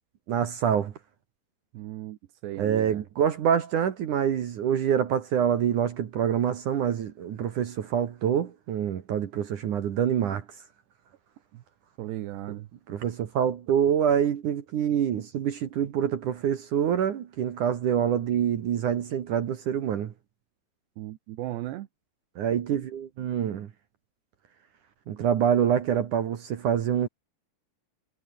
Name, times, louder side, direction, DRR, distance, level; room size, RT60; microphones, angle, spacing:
voice 1, 0.3-0.9 2.6-10.4 12.9-20.1 22.4-23.7 25.1-27.1, right 9 dB, 60° right, 2.3 m, -26 dB
voice 2, 1.7-3.1 11.5-11.6 12.0-12.7 21.0-21.9, right 15 dB, 75° right, 3.1 m, -36 dB
omnidirectional pair, 5.4 m